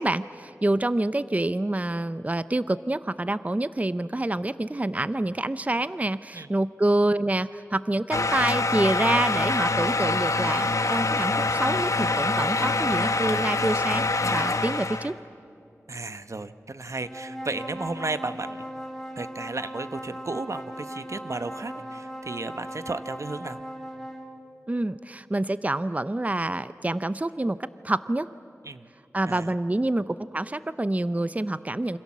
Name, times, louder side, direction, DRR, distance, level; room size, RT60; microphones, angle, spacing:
voice 1, 0.0-15.1 24.7-27.6 27.8-28.3 29.1-32.0, right 2 dB, 30° right, 14 dB, 0.6 m, -27 dB
sound 1, 8.1-15.1, left 3 dB, 80° left, 1.2 m, -25 dB
voice 2, 15.9-18.6 19.2-23.6 28.7-28.9 29.3-29.5, right 3 dB, 70° right, 11 dB, 0.9 m, -34 dB
sound 2, 16.9-24.3, equal, 5° left, 4.5 m, -38 dB
28.0 x 26.0 x 7.4 m, 2.7 s
wide cardioid pair, 55°, 5 cm